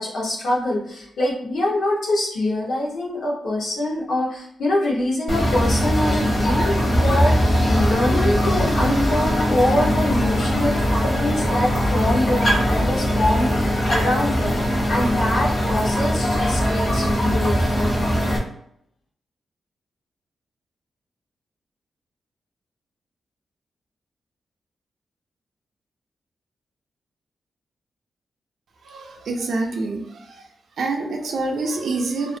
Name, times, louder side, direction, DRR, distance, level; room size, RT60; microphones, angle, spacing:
voice 1, 0.0-18.0, left 1 dB, 85° left, -3 dB, 0.8 m, -24 dB
sound 1, 5.3-18.4, equal, 50° left, 0.8 m, -20 dB
voice 2, 28.8-30.4 30.8-32.4, right 3 dB, 70° right, 1 dB, 0.3 m, -26 dB
2.4 x 2.1 x 2.5 m, 0.72 s
cardioid pair, 105°, 0 cm